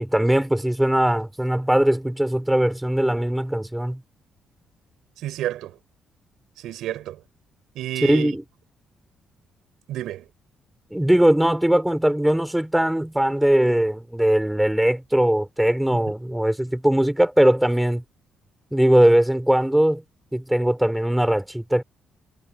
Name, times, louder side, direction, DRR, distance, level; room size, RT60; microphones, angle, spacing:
voice 1, 0.0-4.0 8.0-8.4 10.9-18.0 18.7-20.0 20.3-21.8, right 1 dB, 5° right, 4.1 m, -20 dB
voice 2, 5.2-5.8 6.6-7.2 7.7-8.3 9.9-10.3, right 13 dB, 85° right, 7.9 m, -30 dB
cardioid pair, 90°, 0 cm